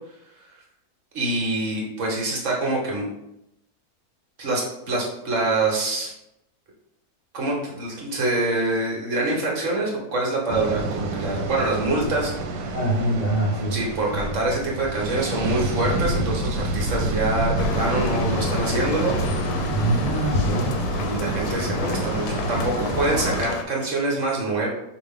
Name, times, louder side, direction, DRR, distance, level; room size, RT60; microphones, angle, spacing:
voice 1, 1.1-3.1 4.4-6.1 7.3-12.3 13.7-19.1 20.9-24.7, right 2 dB, 50° right, -2 dB, 1.4 m, -25 dB
sound 1, 10.5-23.4, right 2 dB, 80° right, 1.3 m, -28 dB
voice 2, 12.7-13.8 19.7-20.7, right 1 dB, 45° left, -4 dB, 0.5 m, -24 dB
sound 2, 17.6-23.6, left 6 dB, 85° left, 1.2 m, -30 dB
5.0 x 2.6 x 3.6 m, 0.84 s
omnidirectional pair, 1.8 m